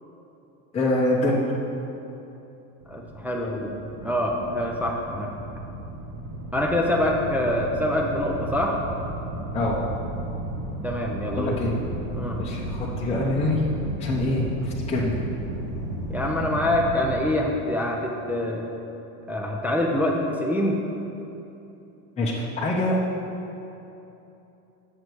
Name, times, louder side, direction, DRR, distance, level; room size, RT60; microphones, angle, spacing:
voice 1, 0.7-1.4 9.5-9.8 11.3-11.7 12.4-13.6 14.0-15.2 22.2-23.0, left 2 dB, 15° left, -5 dB, 0.8 m, -25 dB
sound 1, 2.8-17.2, right 2 dB, 60° right, 1.4 m, -34 dB
voice 2, 2.9-3.7 4.0-5.3 6.5-8.8 10.8-11.6 12.1-12.4 16.1-18.6 19.3-20.8, left 1 dB, 5° right, -2 dB, 0.3 m, -25 dB
7.5 x 6.6 x 4.7 m, 2.9 s
supercardioid pair, 115°, 44 cm